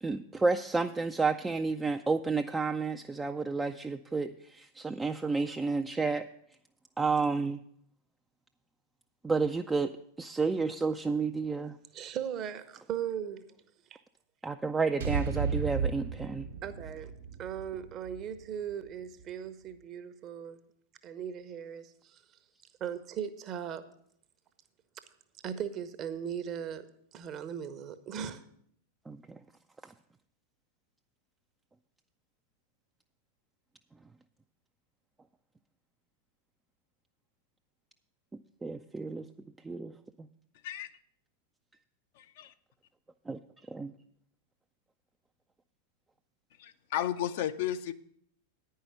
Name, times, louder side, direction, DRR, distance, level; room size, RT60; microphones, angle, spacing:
voice 1, 0.0-6.3 7.0-7.6 9.2-11.8 14.4-16.5 29.1-29.4 29.8-29.9 38.6-39.3 39.6-40.3 43.3-43.4 43.7-43.9, right 4 dB, 10° right, 0.3 m, -31 dB
voice 2, 11.9-13.6 13.9-14.0 16.6-17.1 17.4-20.6 21.0-22.4 22.8-23.8 24.9-25.0 25.4-26.9 27.1-28.4, right 8 dB, 35° right, 0.8 m, -38 dB
sound 1, 15.0-19.2, right 6 dB, 65° right, 1.0 m, -35 dB
voice 3, 42.2-42.5 46.6-47.9, left 11 dB, 50° left, 0.5 m, -33 dB
9.3 x 5.6 x 8.0 m
figure-of-eight pair, 90°, 0 cm